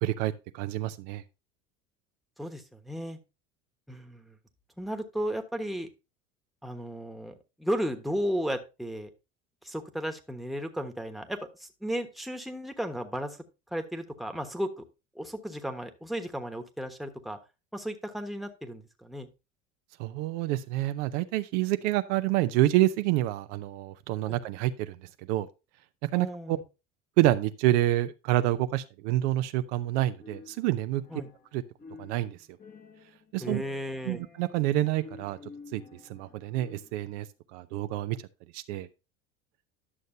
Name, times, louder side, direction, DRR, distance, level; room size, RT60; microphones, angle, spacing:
voice 1, 0.0-1.2 20.0-25.0 25.3-25.5 26.1-26.6 27.2-31.0 31.5-31.6 32.0-32.4 33.3-33.6 34.1-35.4 35.7-35.8 36.1-37.3 37.5-38.2 38.5-38.9, right 15 dB, 70° right, 0.7 m, -27 dB
voice 2, 2.4-3.2 3.9-4.4 4.8-5.9 6.6-9.1 9.6-13.4 13.7-14.8 15.1-17.4 17.7-19.3 24.2-24.4 26.1-26.6 31.1-31.3 33.4-34.2, equal, ahead, 1.2 m, -34 dB
sound 1, 30.2-31.5 31.8-37.1, left 4 dB, 25° left, 1.1 m, -50 dB
11.0 x 6.5 x 2.7 m
hypercardioid pair, 80°, 37 cm